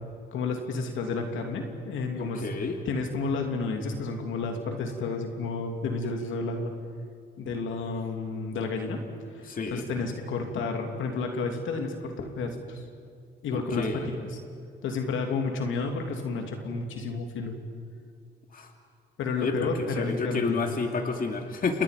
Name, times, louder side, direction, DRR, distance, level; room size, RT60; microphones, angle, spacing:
voice 1, 0.3-2.4 2.9-6.7 7.4-9.0 9.3-12.8 13.4-13.9 14.2-14.3 14.8-17.5 19.2-20.6, left 4 dB, 80° left, 3 dB, 2.9 m, -31 dB
voice 2, 2.2-2.8 9.4-9.8 13.5-14.1 18.5-18.7 19.4-21.8, left 4 dB, 45° left, 3 dB, 2.5 m, -30 dB
29.5 x 28.0 x 5.3 m, 2.2 s
cardioid pair, 90°, 20 cm